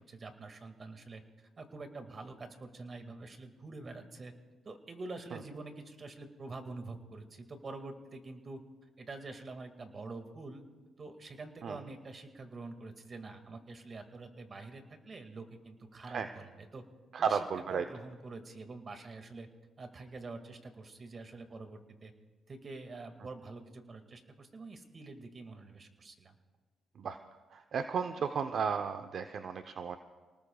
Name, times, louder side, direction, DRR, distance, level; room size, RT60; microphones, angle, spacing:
voice 1, 0.0-4.3 4.6-8.6 9.0-10.6 11.0-16.8 17.2-19.5 19.8-22.1 22.5-26.4, right 3 dB, 40° right, 6 dB, 2.0 m, -46 dB
voice 2, 17.1-17.8 27.0-27.2 27.5-30.0, right 6 dB, 60° right, 7 dB, 0.7 m, -34 dB
29.0 x 19.0 x 2.3 m, 1.3 s
cardioid pair, 90°, 0 cm